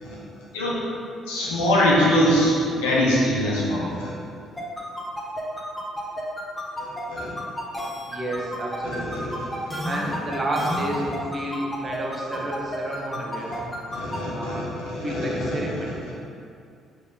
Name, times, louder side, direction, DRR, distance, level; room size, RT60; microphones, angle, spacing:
voice 1, 1.3-4.1 6.8-7.3 8.8-9.5 13.9-15.8, equal, 70° left, -6 dB, 1.4 m, -23 dB
sound 1, 4.6-14.2, left 1 dB, 5° left, 1.5 m, -31 dB
voice 2, 8.1-9.4 9.8-13.7 14.3-16.1, right 1 dB, 30° right, -2 dB, 1.2 m, -31 dB
7.8 x 4.0 x 3.9 m, 2.4 s
figure-of-eight pair, 45°, 0 cm